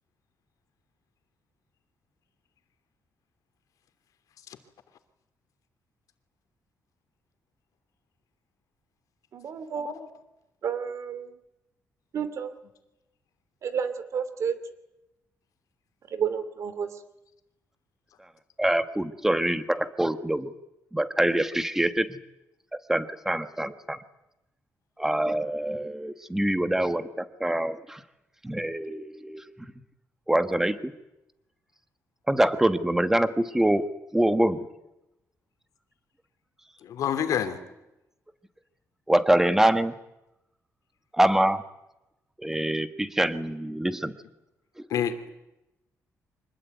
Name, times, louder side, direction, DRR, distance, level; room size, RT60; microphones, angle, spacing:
voice 1, 9.3-9.9 10.6-11.3 12.1-12.5 13.6-14.6 16.1-16.9, right 7 dB, 55° right, 12 dB, 2.9 m, -30 dB
voice 2, 18.6-20.5 20.9-22.1 22.9-24.0 25.0-28.0 28.4-29.7 30.3-30.9 32.3-33.9 34.1-34.7 39.1-39.9 41.1-41.6 42.4-44.1 44.9-45.0, right 1 dB, 5° right, 11 dB, 1.5 m, -25 dB
voice 3, 36.8-37.6 44.9-45.3, left 9 dB, 75° left, 8 dB, 3.0 m, -28 dB
25.5 x 20.5 x 9.5 m, 0.92 s
cardioid pair, 135°, 6 cm